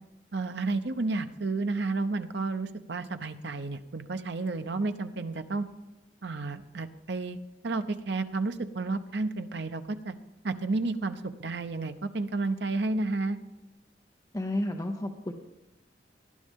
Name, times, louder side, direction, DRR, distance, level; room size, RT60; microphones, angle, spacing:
voice 1, 0.3-5.7 6.2-7.4 7.6-10.1 10.4-13.4, right 3 dB, 75° right, 9 dB, 0.8 m, -31 dB
voice 2, 14.3-15.3, left 1 dB, 20° left, 4 dB, 0.7 m, -31 dB
18.5 x 11.0 x 3.6 m, 1.0 s
head